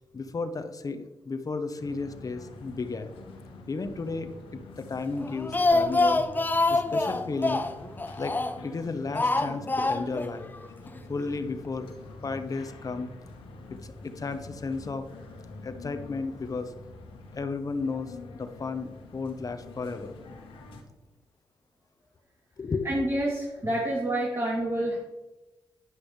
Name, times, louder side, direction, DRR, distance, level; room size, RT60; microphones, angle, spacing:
voice 1, 0.1-3.1 3.7-6.2 6.7-7.6 8.2-8.3 8.6-10.5 11.1-11.9 12.2-13.1 13.7-15.1 15.6-16.7 17.3-20.2 22.6-22.9 23.6-23.7, left 4 dB, 40° left, 9 dB, 1.0 m, -33 dB
sound 1, 1.8-20.8, left 2 dB, 85° left, 1.5 m, -46 dB
Speech, 5.2-8.7 9.2-10.3 10.6-10.7 11.0-11.1, left 2 dB, 20° left, 0.7 m, -25 dB
voice 2, 22.8-25.0, right 1 dB, 30° right, -4 dB, 2.8 m, -28 dB
10.5 x 9.8 x 3.3 m, 1.1 s
cardioid pair, 60°, 9 cm